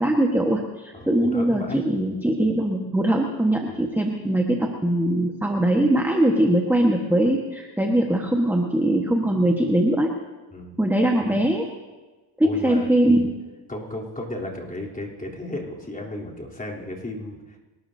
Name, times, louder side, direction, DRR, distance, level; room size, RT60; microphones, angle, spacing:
voice 1, 0.0-10.1 10.8-11.7 12.4-13.3, right 1 dB, 5° right, 1 dB, 1.4 m, -21 dB
voice 2, 0.9-1.8 3.7-3.8 10.5-10.8 12.4-12.9 13.7-17.6, left 1 dB, 15° left, -2 dB, 3.4 m, -34 dB
27.0 x 13.0 x 2.8 m, 1.2 s
cardioid pair, 80°, 46 cm